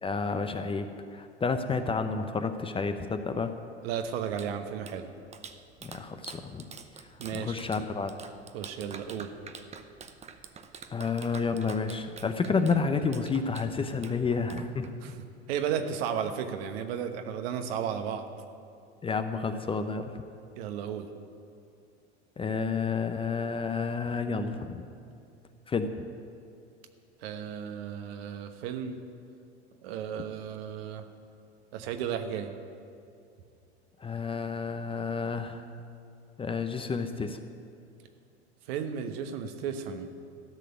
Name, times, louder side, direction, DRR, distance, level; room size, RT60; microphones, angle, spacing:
voice 1, 0.0-3.5 5.8-6.6 7.3-8.1 10.9-15.1 19.0-20.1 22.4-24.8 25.7-26.0 34.0-35.6 36.4-37.4, left 4 dB, 15° left, 8 dB, 0.7 m, -30 dB
voice 2, 3.8-5.1 7.2-7.6 8.5-9.3 15.0-18.3 20.6-21.1 27.2-29.0 29.8-31.0 31.7-32.5 38.7-40.1, right 8 dB, 60° right, 7 dB, 1.2 m, -34 dB
Clapping, 4.1-15.2, right 5 dB, 20° right, 0.8 m, -48 dB
13.5 x 6.7 x 10.0 m, 2.5 s
hypercardioid pair, 90°, 34 cm